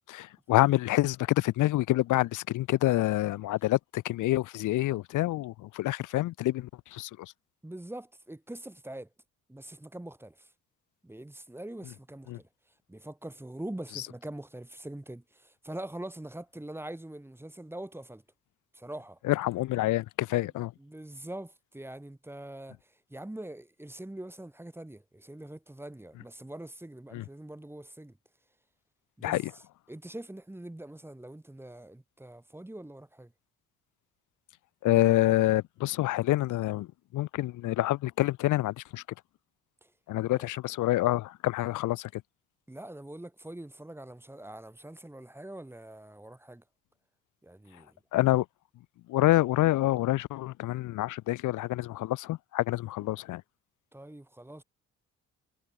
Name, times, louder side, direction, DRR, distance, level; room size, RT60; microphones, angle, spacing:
voice 1, 0.1-7.3 12.3-12.4 13.9-14.0 19.2-20.7 27.1-27.2 29.2-29.5 34.8-36.9 37.1-39.0 40.1-42.2 48.1-48.5 49.1-53.4, left 16 dB, 85° left, 0.9 m, -27 dB
voice 2, 7.6-9.1 9.5-10.5 11.0-12.5 12.9-18.2 18.7-19.2 20.8-22.8 23.1-28.2 29.2-29.4 29.9-33.3 39.8-39.9 40.3-40.5 42.7-46.6 47.4-48.0 53.9-54.6, right 1 dB, 10° right, 2.4 m, -43 dB
cardioid pair, 90°, 30 cm